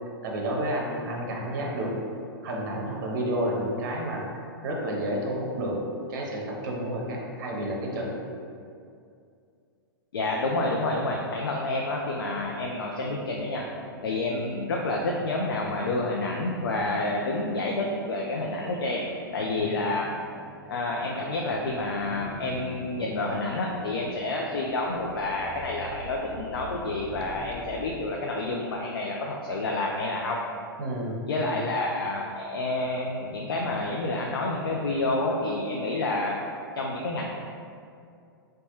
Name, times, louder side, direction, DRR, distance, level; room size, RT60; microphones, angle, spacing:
voice 1, 0.2-1.9 2.4-5.8 6.1-8.1 19.6-19.8 30.8-31.6, right 1 dB, 50° right, -1 dB, 0.7 m, -30 dB
voice 2, 10.1-13.6 14.0-19.1 19.3-20.1 20.7-30.4 31.3-36.4 36.8-37.3, left 2 dB, 70° left, -1 dB, 0.4 m, -29 dB
sound 1, 12.3-28.3, right 1 dB, 15° right, 0.4 m, -46 dB
3.9 x 2.2 x 2.9 m, 2.4 s
figure-of-eight pair, 105°, 12 cm